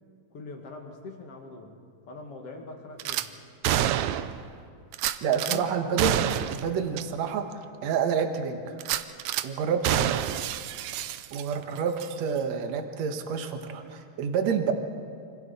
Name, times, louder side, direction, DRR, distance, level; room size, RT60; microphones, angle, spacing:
voice 1, 0.3-1.8 2.1-3.3 5.4-5.7, left 4 dB, 50° left, 2 dB, 2.5 m, -42 dB
Gunshot gunfire / Glass, 3.0-3.3 3.6-4.4 4.9-5.6 6.0-6.6 7.0-7.1 7.5-7.6 8.8-9.5 9.8-11.6 12.0-12.1, right 11 dB, 80° right, 1.6 m, -28 dB
voice 2, 5.2-6.1 6.5-7.5 7.8-8.8 9.4-10.4 11.3-14.7, right 6 dB, 60° right, 5 dB, 2.3 m, -28 dB
28.0 x 25.5 x 4.2 m, 2.3 s
omnidirectional pair, 3.8 m